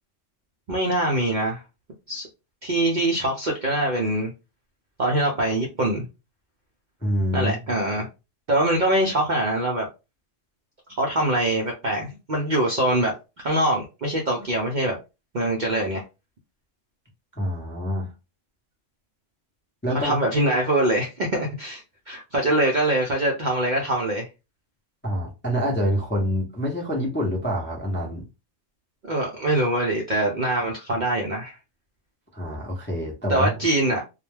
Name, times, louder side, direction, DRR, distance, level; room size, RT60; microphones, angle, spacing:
voice 1, 0.7-1.6 2.1-2.3 2.6-4.3 5.0-6.1 7.3-8.1 8.5-9.9 11.0-13.1 13.4-15.0 15.3-16.0 19.9-24.3 29.0-31.6 33.3-34.0, right 1 dB, 55° right, 0.5 m, -23 dB
voice 2, 7.0-7.5 17.4-18.1 19.8-20.2 25.0-28.2 32.3-33.5, equal, 15° left, 0.4 m, -26 dB
2.2 x 2.1 x 3.2 m
omnidirectional pair, 1.3 m